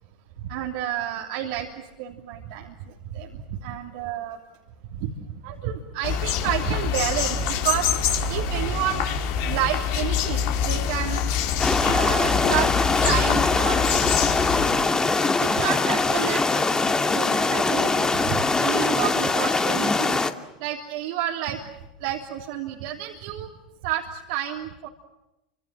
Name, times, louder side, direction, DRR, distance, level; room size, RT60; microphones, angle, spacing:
voice 1, 0.4-4.4 4.9-5.1 5.4-7.9 8.3-9.0 9.5-11.3 11.8-14.3 15.4-16.6 17.0-20.2 20.6-21.6 22.0-23.5 23.8-24.9, right 11 dB, 65° right, 2 dB, 3.2 m, -30 dB
sound 1, 6.0-14.7, left 7 dB, 55° left, 4.8 m, -25 dB
sound 2, 11.6-20.3, left 3 dB, 15° left, 2.5 m, -22 dB
29.5 x 26.0 x 7.6 m, 0.94 s
hypercardioid pair, 90°, 4 cm